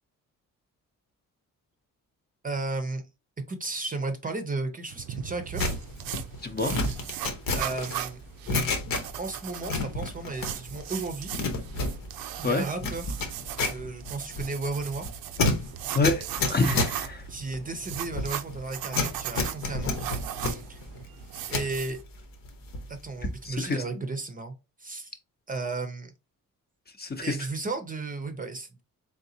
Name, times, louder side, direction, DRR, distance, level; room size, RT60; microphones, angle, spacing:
voice 1, 2.4-3.0 3.5-5.8 7.5-8.2 9.2-11.4 12.4-13.2 13.7-15.1 17.3-19.9 20.4-20.8 21.5-22.0 22.9-24.5 24.8-25.1 25.5-26.1 27.2-28.8, right 3 dB, 25° right, 0.6 m, -34 dB
sound 1, 4.9-22.0, right 11 dB, 90° right, 0.6 m, -38 dB
sound 2, 5.6-9.4 9.6-10.8 11.1-21.7 22.2-23.0 23.3-23.6, left 3 dB, 70° left, 1.1 m, -31 dB
voice 2, 6.4-6.7 12.4-12.6 15.9-17.2 23.4-23.8 27.0-27.4, left 3 dB, 30° left, 0.7 m, -27 dB
3.8 x 3.6 x 2.7 m
cardioid pair, 110°, 34 cm